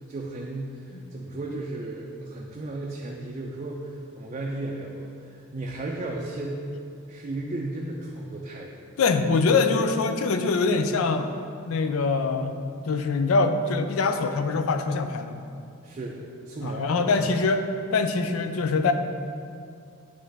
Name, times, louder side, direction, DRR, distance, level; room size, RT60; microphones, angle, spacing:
voice 1, 0.1-6.7 7.1-8.8 9.5-9.6 15.8-17.2, right 2 dB, 35° right, -1 dB, 0.4 m, -35 dB
voice 2, 9.0-11.3 11.7-12.6 12.9-15.4 16.6-17.6 17.9-18.9, left 4 dB, 85° left, 7 dB, 0.4 m, -23 dB
9.2 x 3.2 x 3.4 m, 2.4 s
head